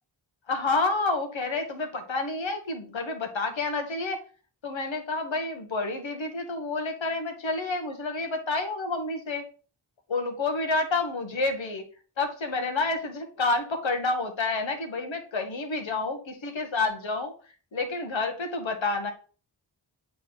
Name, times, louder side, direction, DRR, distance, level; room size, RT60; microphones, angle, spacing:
voice 1, 0.5-4.2 4.6-9.4 10.1-11.8 12.2-17.3 17.7-19.1, left 3 dB, 85° left, 5 dB, 1.3 m, -29 dB
8.3 x 4.2 x 3.9 m, 0.39 s
cardioid pair, 45°, 45 cm